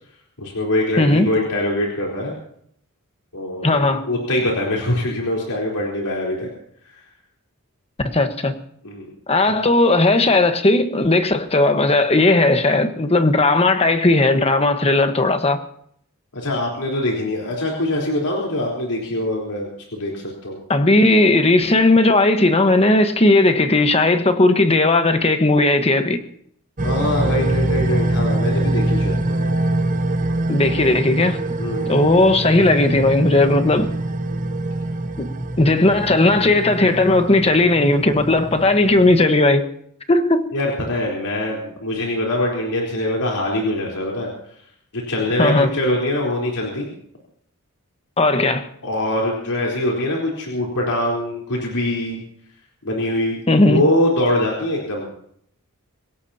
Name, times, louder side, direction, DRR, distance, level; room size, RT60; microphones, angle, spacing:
voice 1, 0.4-2.4 3.3-6.5 6.9-7.0 8.8-9.1 16.3-20.6 26.8-29.4 31.6-32.1 40.5-44.3 44.9-46.9 48.8-52.2 52.8-55.1, left 1 dB, 90° left, 4.1 m, -23 dB
voice 2, 1.0-1.3 3.6-4.0 8.1-8.5 9.3-15.6 20.7-26.2 30.5-31.4 31.9-33.9 35.2-35.3 35.6-39.7 40.1-40.5 45.4-45.7 48.2-48.7 53.5-53.8, left 2 dB, 25° left, 1.3 m, -16 dB
sound 1, 26.8-39.3, right 2 dB, 35° right, 1.0 m, -24 dB
26.0 x 17.0 x 2.9 m
head